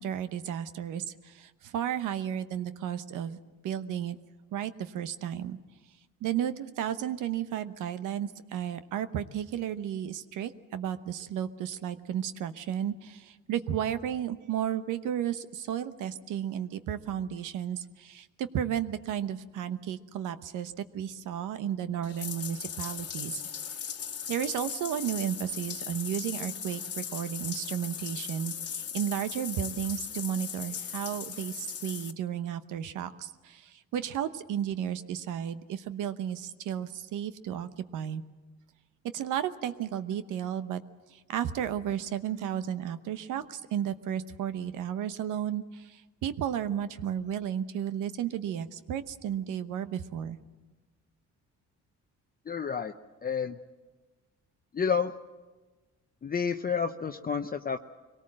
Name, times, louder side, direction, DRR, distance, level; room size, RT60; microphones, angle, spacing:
voice 1, 0.0-3.4 3.6-4.2 4.5-5.6 6.2-23.4 24.3-38.2 39.1-40.8 41.1-50.4, right 9 dB, 85° right, 11 dB, 1.0 m, -33 dB
Bathtub (filling or washing), 22.0-32.1, left 8 dB, 50° left, 1.4 m, -38 dB
voice 2, 52.5-52.9 53.2-53.6 54.7-55.1 56.2-57.8, left 6 dB, 30° left, 7 dB, 0.7 m, -30 dB
24.0 x 18.5 x 7.6 m, 1.3 s
cardioid pair, 90°, 30 cm